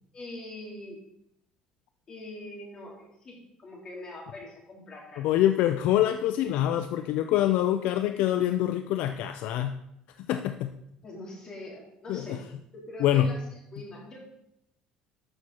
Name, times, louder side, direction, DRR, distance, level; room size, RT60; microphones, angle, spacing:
voice 1, 0.1-1.0 2.1-5.2 11.0-12.5 12.7-13.4 13.7-14.2, left 1 dB, 35° left, -2 dB, 3.8 m, -43 dB
voice 2, 5.2-9.8 10.2-10.7 12.1-12.4 13.0-13.3, left 12 dB, 70° left, 9 dB, 0.5 m, -25 dB
13.0 x 6.3 x 4.3 m, 0.79 s
cardioid pair, 115°, 2 cm